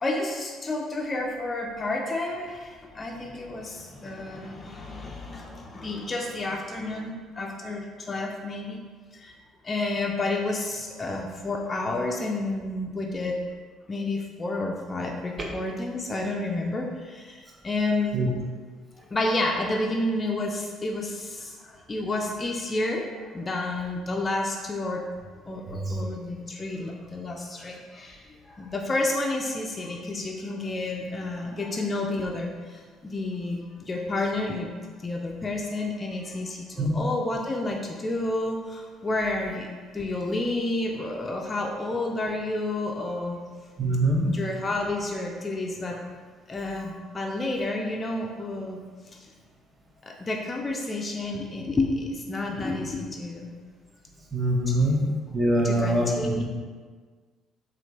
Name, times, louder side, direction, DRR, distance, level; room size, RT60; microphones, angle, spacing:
voice 1, 0.0-8.8 9.1-9.4 9.6-13.4 13.9-18.2 19.1-25.1 25.5-34.7 35.0-39.7 39.9-43.4 44.3-46.0 46.5-48.8 49.1-49.3 50.0-53.5 54.7-55.0 55.6-56.4, left 2 dB, 30° left, 0 dB, 0.4 m, -30 dB
voice 2, 43.8-44.3 54.3-55.0 55.3-56.4, right 1 dB, 30° right, -1 dB, 0.7 m, -23 dB
3.2 x 2.4 x 3.0 m, 1.5 s
hypercardioid pair, 55°, 0 cm